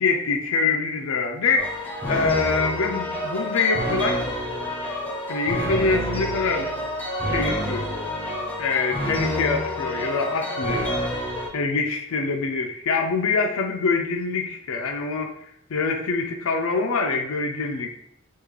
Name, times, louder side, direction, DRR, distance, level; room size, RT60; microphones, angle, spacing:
voice 1, 0.0-4.3 5.3-6.7 7.3-7.9 8.6-10.9 11.5-15.3 15.7-17.9, left 4 dB, 75° left, 4 dB, 0.5 m, -25 dB
sound 1, 1.6-11.5, equal, 10° left, 0.6 m, -28 dB
3.5 x 2.4 x 3.1 m, 0.72 s
head